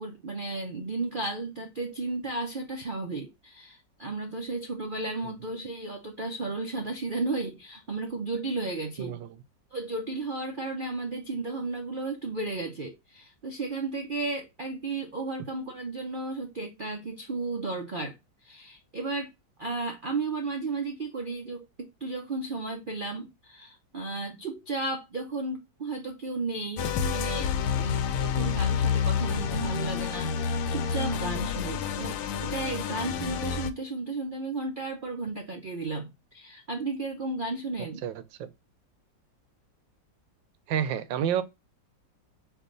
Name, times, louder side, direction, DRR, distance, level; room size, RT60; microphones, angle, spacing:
voice 1, 0.0-9.2 9.7-18.2 18.4-19.3 19.6-38.0, right 3 dB, 60° right, 0.5 m, -34 dB
voice 2, 9.0-9.3 38.0-38.1 38.4-38.5 40.7-41.4, right 9 dB, 85° right, 1.4 m, -28 dB
sound 1, 26.8-33.7, left 7 dB, 90° left, 1.3 m, -29 dB
4.5 x 2.9 x 3.8 m
omnidirectional pair, 2.0 m